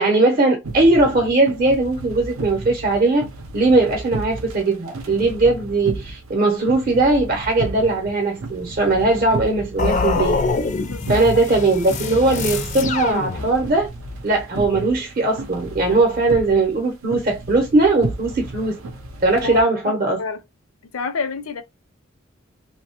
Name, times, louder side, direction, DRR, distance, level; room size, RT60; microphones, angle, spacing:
voice 1, 0.0-3.3 3.5-10.4 11.1-13.9 14.2-18.8 19.2-20.2, right 2 dB, 40° right, 0.7 m, -19 dB
sound 1, 0.6-19.6, right 2 dB, 90° right, 0.6 m, -34 dB
sound 2, 9.8-13.9, left 4 dB, 35° left, 0.4 m, -25 dB
voice 2, 10.8-11.2 19.4-20.4 20.8-21.6, left 5 dB, 85° left, 0.5 m, -29 dB
2.7 x 2.1 x 2.8 m
head